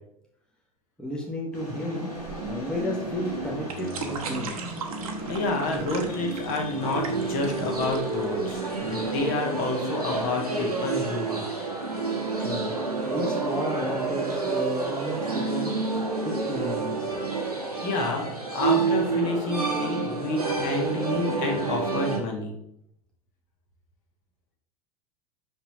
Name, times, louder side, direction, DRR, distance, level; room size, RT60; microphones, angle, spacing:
voice 1, 1.0-2.1 2.4-4.8 12.4-12.7 13.0-15.7 16.2-17.2 17.6-17.7, equal, 5° left, -2 dB, 1.1 m, -33 dB
sound 1, 1.5-15.9, right 2 dB, 85° left, 2.3 m, -38 dB
sound 2, 2.2-9.2, right 5 dB, 70° right, 1.0 m, -40 dB
voice 2, 5.3-11.4 17.4-17.5 17.8-18.2 18.5-22.5, left 2 dB, 45° left, 1 dB, 1.6 m, -29 dB
sound 3, 6.8-22.2, right 4 dB, 90° right, 1.2 m, -29 dB
5.8 x 5.6 x 2.9 m, 0.75 s
figure-of-eight pair, 85°, 19 cm